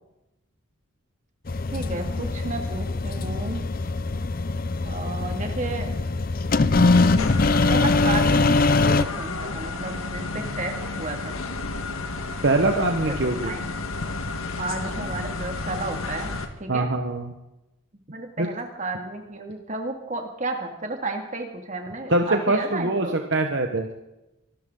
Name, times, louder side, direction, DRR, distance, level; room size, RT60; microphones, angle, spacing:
sound 1, 1.5-9.0, left 3 dB, 40° left, 0.6 m, -22 dB
voice 1, 1.7-3.7 4.8-5.9 6.8-7.3 7.7-11.4 13.1-13.6 14.6-16.3 16.6-16.9 18.1-23.2, right 2 dB, 35° right, 4 dB, 2.3 m, -33 dB
sound 2, 7.0-16.5, left 3 dB, 80° left, 1.6 m, -32 dB
voice 2, 12.4-13.5 16.7-17.4 18.4-18.5 22.1-23.9, right 2 dB, 55° right, 4 dB, 1.2 m, -23 dB
25.0 x 13.0 x 3.9 m, 0.94 s
head